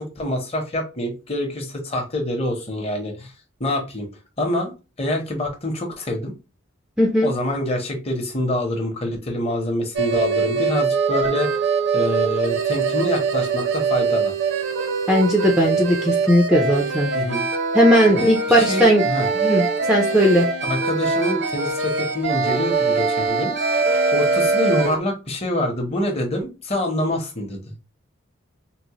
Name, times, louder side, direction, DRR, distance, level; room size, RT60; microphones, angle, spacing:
voice 1, 0.0-3.3 3.6-4.1 4.4-6.3 7.2-11.6 11.9-14.3 17.1-17.5 18.2-19.3 20.6-23.7 24.1-27.7, left 1 dB, 30° left, 2 dB, 0.8 m, -26 dB
voice 2, 7.0-7.3 15.1-17.1 17.7-19.0 19.4-20.5, equal, 5° right, -1 dB, 0.4 m, -17 dB
sound 1, 9.9-25.0, right 4 dB, 55° right, 0.6 m, -22 dB
3.8 x 2.1 x 2.9 m, 0.29 s
head